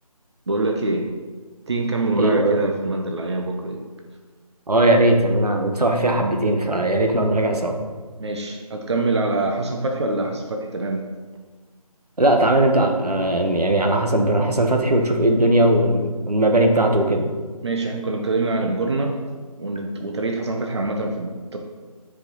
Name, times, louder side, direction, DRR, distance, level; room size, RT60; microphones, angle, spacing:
voice 1, 0.5-1.1 1.7-3.8 8.2-11.1 17.6-19.2 19.6-21.6, right 2 dB, 45° right, 2 dB, 0.8 m, -25 dB
voice 2, 2.2-2.6 4.7-7.8 12.2-17.3, right 1 dB, 85° right, 3 dB, 1.3 m, -19 dB
9.6 x 5.0 x 4.0 m, 1.4 s
figure-of-eight pair, 165°, 19 cm